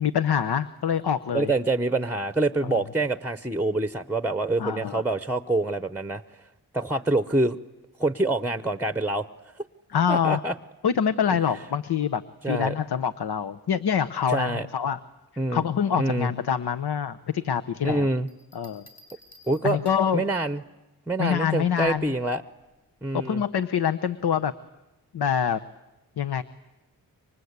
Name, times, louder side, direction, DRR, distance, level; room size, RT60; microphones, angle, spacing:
voice 1, 0.0-1.5 4.6-5.0 9.9-10.4 10.8-15.0 15.5-18.1 18.5-18.8 19.6-20.2 21.2-22.1 23.1-24.5 25.1-25.6 26.2-26.4, left 8 dB, 75° left, 10 dB, 0.9 m, -25 dB
voice 2, 1.3-6.2 6.7-7.6 8.0-9.3 10.1-10.5 12.4-12.7 14.3-14.7 15.4-15.7 16.0-16.3 17.8-18.3 19.5-19.8 20.1-20.6 21.1-22.4 23.0-23.4, right 2 dB, 5° right, 12 dB, 0.9 m, -26 dB
Bell, 18.3-20.2 21.8-22.2, left 1 dB, 40° left, 5.1 m, -53 dB
29.0 x 25.0 x 8.2 m, 1.1 s
wide cardioid pair, 95°, 39 cm